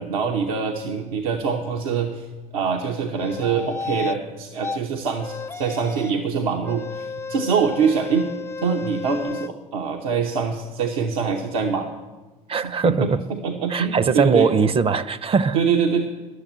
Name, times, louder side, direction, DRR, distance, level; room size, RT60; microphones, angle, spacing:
voice 1, 0.0-2.3 2.5-8.3 8.6-11.9 12.6-14.5 15.5-16.0, right 6 dB, 80° right, 0.9 m, -24 dB
sound 1, 3.2-4.2 4.6-4.8 5.2-6.2 6.6-9.5, left 4 dB, 15° left, 0.5 m, -33 dB
voice 2, 12.5-13.2 13.7-15.6, right 5 dB, 30° right, 0.6 m, -20 dB
11.0 x 7.1 x 9.1 m
hypercardioid pair, 65°, 18 cm